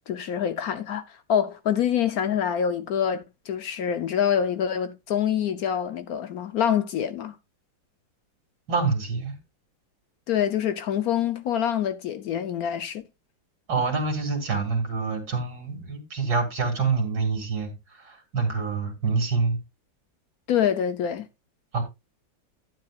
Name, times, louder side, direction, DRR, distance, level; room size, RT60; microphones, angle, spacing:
voice 1, 0.1-7.3 10.3-13.0 20.5-21.3, left 9 dB, 65° left, 1.0 m, -26 dB
voice 2, 8.7-9.4 13.7-19.6 21.7-21.8, right 4 dB, 60° right, 3.2 m, -26 dB
11.5 x 9.6 x 2.4 m
omnidirectional pair, 2.1 m